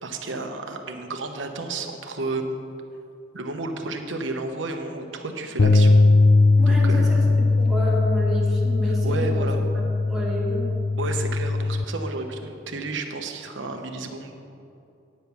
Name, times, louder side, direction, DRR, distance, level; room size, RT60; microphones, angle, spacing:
voice 1, 0.0-2.5 3.3-5.9 6.7-7.3 8.8-9.6 11.0-14.3, right 3 dB, 75° right, 5 dB, 1.0 m, -32 dB
sound 1, 5.6-11.8, left 3 dB, 50° left, 0.4 m, -19 dB
voice 2, 6.6-7.2 7.6-10.7, right 1 dB, ahead, -7 dB, 2.3 m, -30 dB
9.5 x 7.1 x 6.0 m, 2.7 s
head